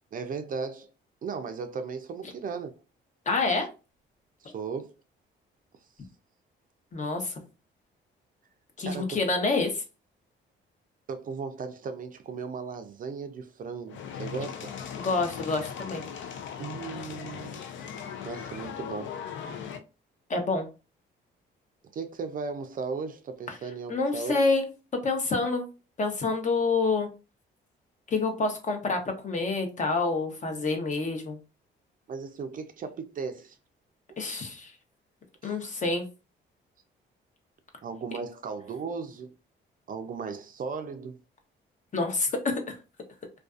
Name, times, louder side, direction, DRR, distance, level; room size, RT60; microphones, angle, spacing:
voice 1, 0.1-0.9 1.2-2.7 4.4-4.9 8.8-9.2 11.1-14.7 16.6-17.6 18.2-19.2 21.9-24.4 32.1-33.6 35.4-35.6 37.8-39.3 39.9-41.2, right 5 dB, 45° right, 0.4 m, -36 dB
voice 2, 3.3-3.7 6.9-7.3 8.8-9.8 15.0-16.1 20.3-20.7 23.5-23.6 23.9-24.7 24.9-25.7 26.0-27.1 28.1-31.4 34.2-34.7 35.4-36.1 41.9-42.6, left 3 dB, 40° left, 0.7 m, -27 dB
sound 1, 13.9-19.8, left 7 dB, 70° left, 0.5 m, -38 dB
2.4 x 2.3 x 2.4 m
cardioid pair, 90°, 20 cm